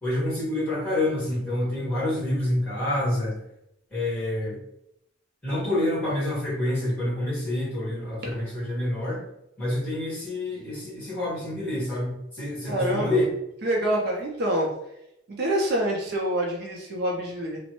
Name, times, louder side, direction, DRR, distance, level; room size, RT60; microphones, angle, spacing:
voice 1, 0.0-3.3 3.9-4.6 5.4-9.2 9.6-13.3, left 1 dB, 5° left, -8 dB, 1.4 m, -27 dB
voice 2, 12.7-13.2 13.6-14.7 15.4-17.6, right 1 dB, 55° right, -1 dB, 0.5 m, -26 dB
3.0 x 2.0 x 3.0 m, 0.80 s
head